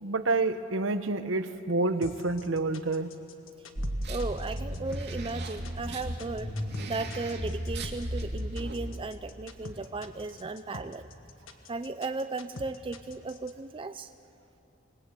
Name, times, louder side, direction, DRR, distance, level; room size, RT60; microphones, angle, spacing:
voice 1, 0.0-3.1, right 3 dB, 75° right, 10 dB, 1.1 m, -28 dB
sound 1, 2.0-13.5, left 2 dB, 90° left, 1.6 m, -45 dB
sound 2, 3.8-8.8, equal, 60° right, 2.5 m, -35 dB
voice 2, 4.1-6.5 6.9-11.1 11.7-14.1, right 3 dB, 25° right, 9 dB, 0.5 m, -36 dB
26.0 x 21.0 x 8.3 m, 3.0 s
head